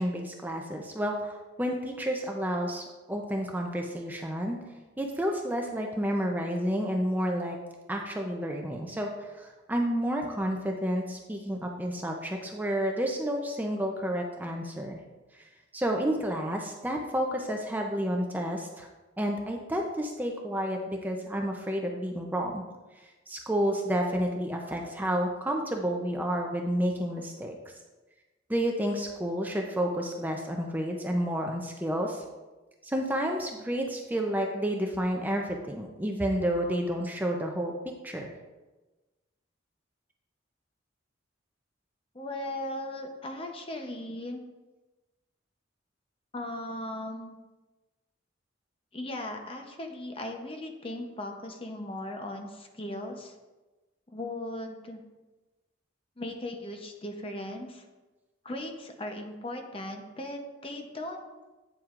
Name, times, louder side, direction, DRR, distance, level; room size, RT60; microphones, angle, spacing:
voice 1, 0.0-4.6 5.0-7.6 7.9-9.1 9.4-15.0 15.7-18.9 19.2-22.6 23.3-27.6 28.5-32.2 32.8-37.7 38.0-38.3, equal, 10° right, 1 dB, 0.6 m, -30 dB
voice 2, 42.1-44.4 46.3-47.4 48.9-53.3 54.1-55.0 56.2-57.8 58.4-61.2, left 1 dB, 30° left, 4 dB, 0.8 m, -38 dB
9.0 x 7.4 x 2.5 m, 1.2 s
head